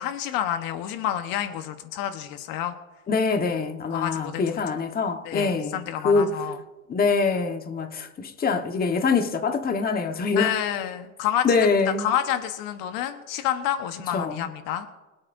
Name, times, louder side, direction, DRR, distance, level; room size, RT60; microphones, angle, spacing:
voice 1, 0.0-2.7 3.9-4.6 5.2-6.6 10.3-11.6 12.0-14.9, left 11 dB, 50° left, 1.2 m, -29 dB
voice 2, 3.1-5.8 6.0-6.3 6.9-10.6 11.4-12.0 14.1-14.5, left 4 dB, 20° left, 1.4 m, -24 dB
25.5 x 8.6 x 2.7 m
hypercardioid pair, 110°, 45 cm